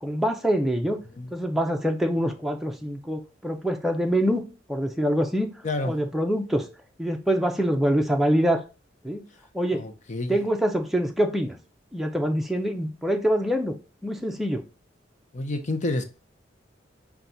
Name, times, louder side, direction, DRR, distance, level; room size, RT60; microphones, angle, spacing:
voice 1, 0.0-1.0 1.3-4.4 4.7-5.5 5.8-6.7 7.0-8.6 9.0-9.2 9.5-9.9 10.3-11.6 11.9-13.7 14.0-14.6, equal, ahead, 0.6 m, -25 dB
voice 2, 5.6-6.0 9.7-10.4 15.3-16.0, left 2 dB, 40° left, 0.7 m, -29 dB
5.7 x 2.3 x 3.9 m
head